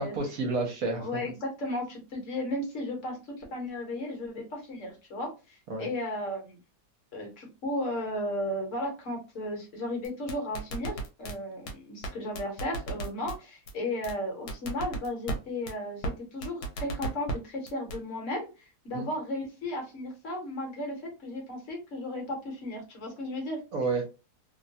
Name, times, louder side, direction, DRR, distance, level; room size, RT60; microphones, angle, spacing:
voice 1, 0.0-1.2 5.7-5.9 18.9-19.1 23.7-24.0, right 3 dB, 65° right, 1 dB, 1.1 m, -30 dB
voice 2, 1.0-6.6 7.1-23.6, left 1 dB, 55° left, 0 dB, 1.2 m, -35 dB
sound 1, 10.0-11.3 11.7-11.8 12.0-12.1 12.4-13.4 13.7-13.8 14.0-14.1 14.5-15.4 15.7-15.8 16.0-16.1 16.4-17.4 17.7-18.0, right 2 dB, 80° left, 1.3 m, -33 dB
2.9 x 2.1 x 2.6 m, 0.30 s
omnidirectional pair, 1.7 m